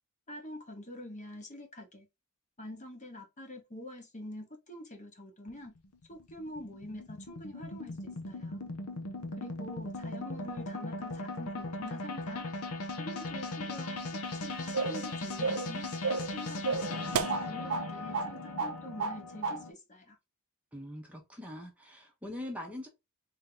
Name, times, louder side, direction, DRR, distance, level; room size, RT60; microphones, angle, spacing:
voice 1, 0.3-2.1 2.6-5.8 6.1-8.6 9.4-12.5 13.0-14.1 14.4-15.9 16.3-20.2, left 1 dB, 35° left, 0.9 m, -46 dB
sound 1, 5.5-19.7, left 2 dB, 80° left, 0.7 m, -38 dB
sound 2, 14.7-15.1 15.4-15.7 16.0-16.3 16.7-17.9 18.1-18.3 18.6-19.2 19.4-19.6, right 4 dB, 65° right, 0.4 m, -31 dB
voice 2, 20.7-22.9, left 1 dB, 5° right, 0.8 m, -42 dB
3.4 x 2.8 x 3.7 m
head